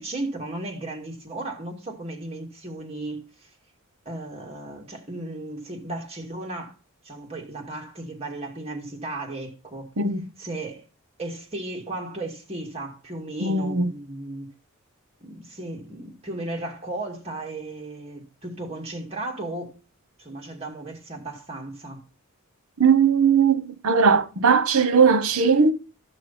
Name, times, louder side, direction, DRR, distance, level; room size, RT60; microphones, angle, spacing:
voice 1, 0.0-3.5 4.1-6.7 7.0-9.9 10.4-10.8 11.2-14.5 15.2-19.8 20.2-22.0, right 2 dB, 30° right, 2.4 m, -35 dB
voice 2, 10.0-10.3 13.4-13.9 22.8-25.7, right 5 dB, 85° right, 0.9 m, -19 dB
13.0 x 6.2 x 4.3 m
head